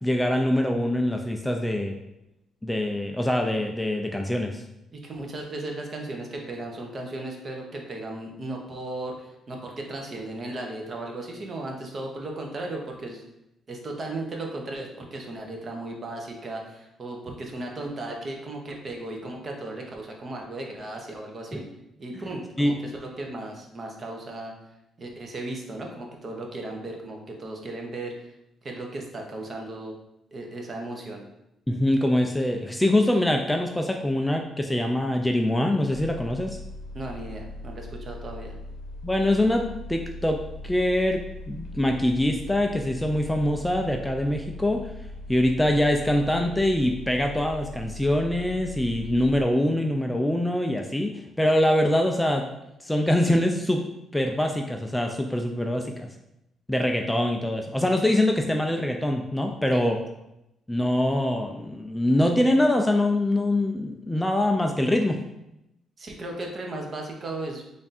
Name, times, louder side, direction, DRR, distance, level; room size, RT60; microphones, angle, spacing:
voice 1, 0.0-2.0 2.6-4.6 22.6-22.7 31.7-36.6 39.0-44.8 45.3-52.4 52.8-53.8 54.1-56.1 56.7-60.0 60.7-65.2, left 1 dB, 5° left, 3 dB, 0.3 m, -24 dB
voice 2, 4.9-13.2 13.7-21.6 22.0-24.5 25.0-28.3 28.6-30.0 30.3-31.2 36.9-38.5 59.7-59.9 66.0-67.6, right 2 dB, 40° right, 1 dB, 0.8 m, -36 dB
sound 1, 35.9-49.4, left 1 dB, 45° left, 0.8 m, -40 dB
3.4 x 2.5 x 4.1 m, 0.85 s
cardioid pair, 90°, 0 cm